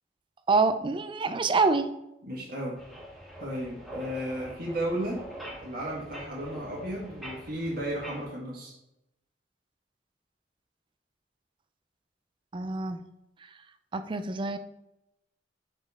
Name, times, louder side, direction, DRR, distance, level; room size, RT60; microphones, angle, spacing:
voice 1, 0.5-1.9 12.5-13.0 13.9-14.6, right 3 dB, 30° right, 10 dB, 0.4 m, -26 dB
voice 2, 2.3-2.8 3.4-5.2 5.6-8.7, right 1 dB, 55° right, -3 dB, 1.6 m, -34 dB
sound 1, 2.7-8.2, right 1 dB, ahead, 1.7 m, -44 dB
5.2 x 4.3 x 4.8 m, 0.87 s
head